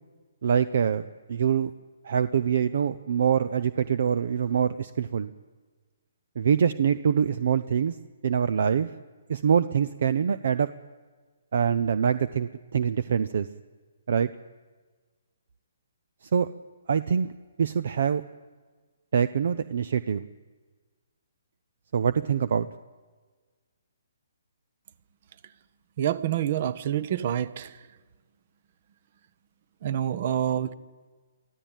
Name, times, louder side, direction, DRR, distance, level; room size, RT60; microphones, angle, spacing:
voice 1, 0.4-1.7 2.0-5.3 6.4-8.0 8.2-8.9 9.3-10.7 11.5-13.5 14.1-14.3 16.3-16.5 16.9-17.3 17.6-18.2 19.1-20.2 21.9-22.7, right 7 dB, 65° right, 15 dB, 0.6 m, -24 dB
voice 2, 26.0-27.7 29.8-30.7, right 10 dB, 50° right, 18 dB, 1.0 m, -27 dB
24.0 x 14.5 x 9.1 m, 1.4 s
hypercardioid pair, 145°, 0 cm